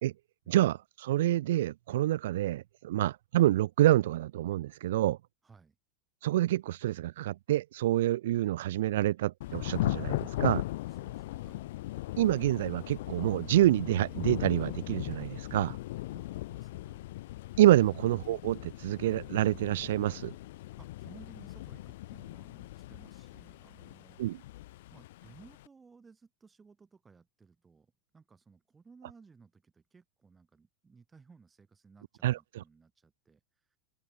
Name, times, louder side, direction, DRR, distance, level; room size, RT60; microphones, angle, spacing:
voice 1, 0.5-5.2 6.2-10.6 12.2-15.8 17.6-20.3 24.2-24.4 32.2-32.6, right 14 dB, 75° right, 0.4 m, -27 dB
voice 2, 5.4-5.8 10.9-11.7 16.1-17.1 20.8-24.2 24.9-33.4 33.7-33.8, right 5 dB, 10° right, 5.6 m, -58 dB
Thunder / Rain, 9.4-25.7, left 17 dB, 65° left, 0.3 m, -38 dB
open air
supercardioid pair, 155°, 0 cm